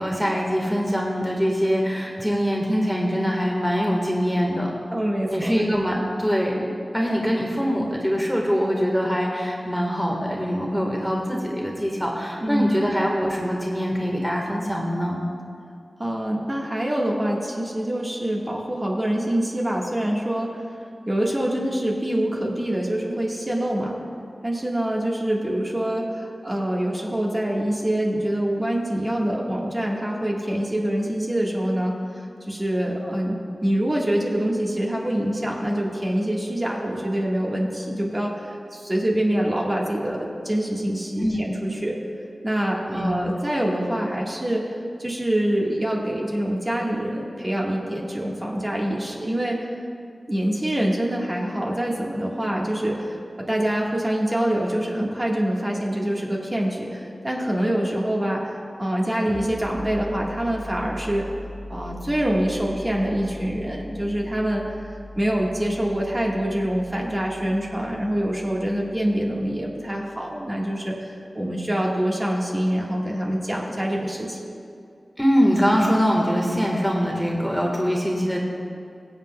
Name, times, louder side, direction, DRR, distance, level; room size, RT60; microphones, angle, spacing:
voice 1, 0.0-4.7 5.3-15.2 41.2-41.4 42.9-43.2 75.2-78.4, equal, ahead, -2 dB, 1.4 m, -23 dB
voice 2, 4.9-5.6 12.4-12.7 16.0-20.6 21.0-24.0 24.4-42.0 42.4-44.7 45.0-49.7 50.3-61.3 61.7-74.4, right 1 dB, 25° right, -2 dB, 1.4 m, -25 dB
sound 1, 59.2-70.6, left 1 dB, 15° left, 1.4 m, -41 dB
21.5 x 7.9 x 2.2 m, 2.4 s
wide cardioid pair, 70°, 0 cm